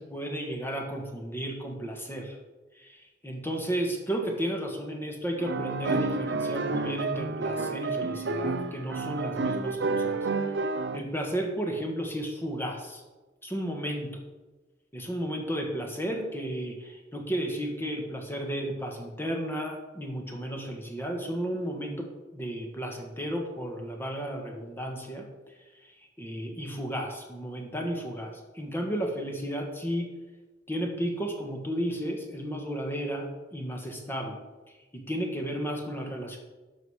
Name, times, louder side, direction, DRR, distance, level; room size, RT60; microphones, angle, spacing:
voice 1, 0.0-2.4 2.7-10.2 10.9-13.0 13.4-14.2 14.9-25.2 25.8-30.1 30.7-34.4 34.9-36.4, equal, 15° left, 2 dB, 1.5 m, -33 dB
sound 1, 5.4-11.0, right 3 dB, 70° right, 0.6 m, -30 dB
11.0 x 6.4 x 4.9 m, 1.2 s
head